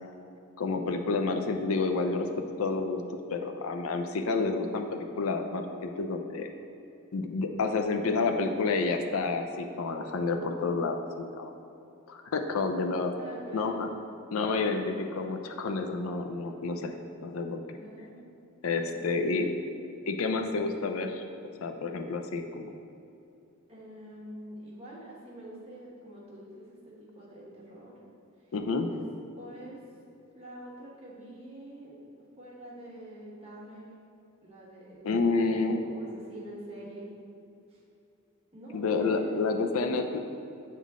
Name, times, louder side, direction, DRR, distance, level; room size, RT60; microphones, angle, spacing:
voice 1, 0.6-2.3 2.6-3.0 3.3-6.5 7.1-11.5 12.1-13.1 13.5-13.9 14.3-16.9 17.2-17.6 18.6-19.5 20.1-21.2 21.6-22.7 28.5-28.9 35.0-35.8 38.7-40.2, left 3 dB, 75° left, 5 dB, 0.5 m, -29 dB
voice 2, 13.2-13.8 17.7-18.2 18.9-19.6 23.7-27.9 28.4-28.5 28.8-29.0 29.4-29.8 30.3-31.9 32.4-33.9 34.4-35.0 35.3-35.4 35.7-37.1 37.7-37.8 38.5-39.3, right 1 dB, 30° right, -6 dB, 1.3 m, -46 dB
8.2 x 3.7 x 3.6 m, 2.7 s
head